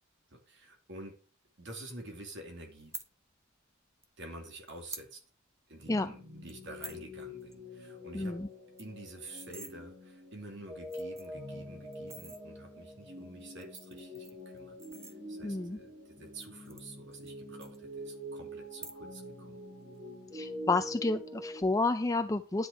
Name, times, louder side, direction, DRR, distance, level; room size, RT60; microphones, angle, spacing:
voice 1, 0.3-1.2 1.6-2.9 4.2-5.2 5.7-8.4 8.8-19.6, right 2 dB, 60° right, 3 dB, 2.6 m, -49 dB
sound 1, 2.8-3.1 4.0-4.1 4.7-5.1 5.5-5.6 5.8-6.0 6.5-7.0 7.4-7.5 7.8-7.9 8.2-8.3 8.6-9.7 10.4-10.5 10.8-11.4 11.9-12.4 13.4-15.6 16.3-17.3 17.6-18.2 18.7-19.3 19.6-20.0, right 3 dB, 15° right, 0.9 m, -48 dB
sound 2, 5.8-21.6, equal, 40° right, 5.0 m, -45 dB
voice 2, 8.1-8.5 15.4-15.8 20.3-22.7, left 3 dB, 15° left, 8 dB, 0.4 m, -30 dB
10.0 x 8.1 x 4.6 m, 0.40 s
head